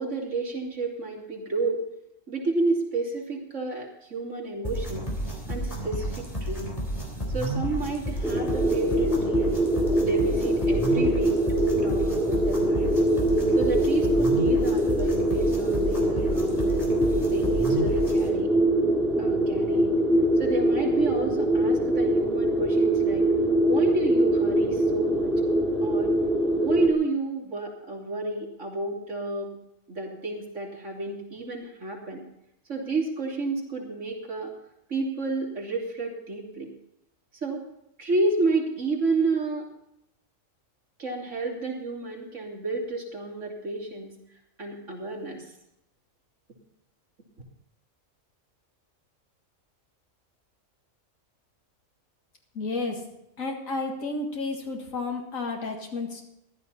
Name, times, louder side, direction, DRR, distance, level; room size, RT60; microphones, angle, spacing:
voice 1, 0.0-1.8 2.3-5.1 5.5-6.7 7.3-9.5 10.0-12.9 13.5-16.8 17.3-18.5 19.2-19.9 20.4-23.3 23.7-25.3 25.8-26.1 26.6-29.5 29.9-32.2 32.7-34.5 34.9-36.7 37.3-37.6 38.0-39.7 41.0-44.1 44.6-45.5, right 3 dB, 65° right, -2 dB, 3.3 m, -30 dB
sound 1, 4.6-18.3, right 1 dB, 25° left, 3.7 m, -32 dB
sound 2, 8.2-26.9, right 1 dB, ahead, 2.1 m, -23 dB
voice 2, 52.5-53.0 53.4-56.2, left 3 dB, 85° left, 2 dB, 2.3 m, -31 dB
14.5 x 12.0 x 4.2 m, 0.83 s
omnidirectional pair, 1.4 m